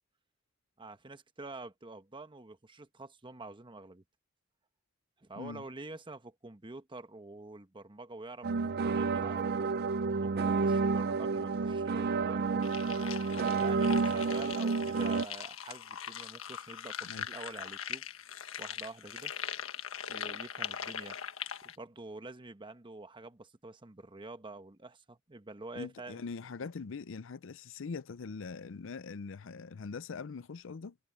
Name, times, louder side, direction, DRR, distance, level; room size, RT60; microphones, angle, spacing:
voice 1, 0.8-4.0 5.2-8.5 8.8-9.7 10.1-12.7 13.6-18.0 18.6-19.3 20.1-21.2 21.6-26.2 26.6-26.7, right 2 dB, 25° right, 1.1 m, -47 dB
sound 1, 8.4-15.2, right 4 dB, 50° right, 0.5 m, -30 dB
sound 2, 12.6-21.7, left 8 dB, 90° left, 1.5 m, -41 dB
voice 2, 25.8-31.0, left 4 dB, 70° left, 0.5 m, -42 dB
head